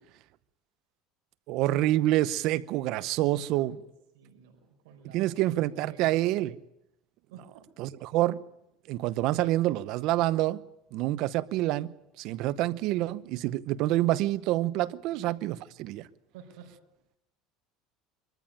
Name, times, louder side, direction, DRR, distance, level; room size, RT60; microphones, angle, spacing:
voice 1, 1.5-3.8 5.1-6.5 7.8-8.4 8.9-10.6 10.9-16.1, right 15 dB, 60° right, 0.8 m, -27 dB
voice 2, 4.1-6.3 7.3-7.6 16.3-16.7, right 7 dB, 85° right, 4.8 m, -51 dB
24.0 x 14.0 x 8.9 m
supercardioid pair, 125°, 0 cm